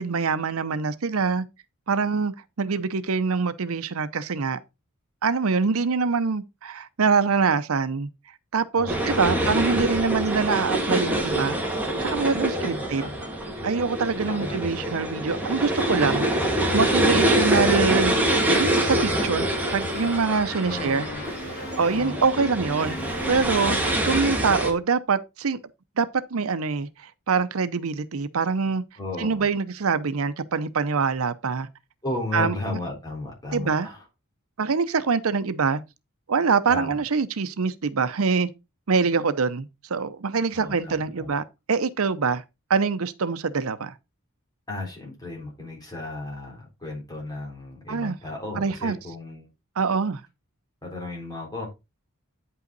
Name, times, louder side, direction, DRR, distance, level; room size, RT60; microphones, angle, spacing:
voice 1, 0.0-1.5 1.9-4.6 5.2-8.1 8.5-11.6 12.0-13.0 13.6-18.1 18.5-21.1 21.8-23.0 23.3-23.8 24.0-25.6 26.0-28.8 29.2-31.7 32.3-32.6 33.5-33.9 34.6-35.8 36.3-38.5 38.9-42.4 42.7-43.9 47.9-48.2 48.6-48.9 49.8-50.2, right 5 dB, 80° right, 0.7 m, -24 dB
voice 2, 8.8-9.9 12.6-13.2 14.2-15.0 20.6-21.2 21.8-22.2 29.0-29.5 32.0-34.0 36.7-37.0 40.5-41.3 44.7-49.5 50.8-51.7, left 2 dB, 20° left, 3.6 m, -35 dB
sound 1, 8.9-24.7, right 1 dB, 10° right, 2.0 m, -25 dB
sound 2, 18.5-23.9, left 3 dB, 40° left, 2.8 m, -38 dB
9.2 x 5.6 x 4.0 m
head